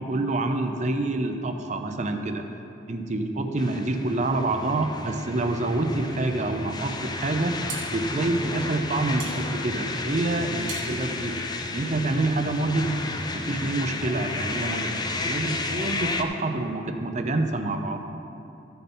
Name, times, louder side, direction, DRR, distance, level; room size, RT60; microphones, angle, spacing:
voice 1, 0.0-2.4 2.9-7.6 7.9-11.4 11.7-12.9 13.3-18.0, right 2 dB, 40° right, 6 dB, 0.7 m, -27 dB
sound 1, 3.6-16.2, left 3 dB, 20° left, 0.5 m, -32 dB
sound 2, 7.3-12.3, right 4 dB, 85° right, 1.8 m, -42 dB
14.0 x 6.8 x 4.4 m, 2.8 s
head